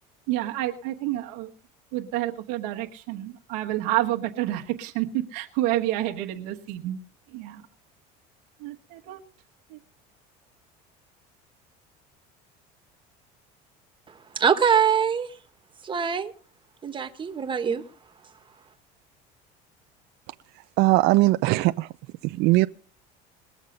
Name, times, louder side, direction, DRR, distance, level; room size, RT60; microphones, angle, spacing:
voice 1, 0.3-1.5 1.9-7.0 7.3-7.6 8.6-9.2 9.7-9.8, right 15 dB, 85° right, 1.3 m, -29 dB
voice 2, 14.3-15.3 15.8-16.3 16.8-17.8, right 7 dB, 25° right, 1.5 m, -23 dB
voice 3, 20.8-21.9 22.2-22.7, right 19 dB, 65° right, 0.5 m, -20 dB
21.0 x 7.3 x 5.2 m
cardioid pair, 115°, 19 cm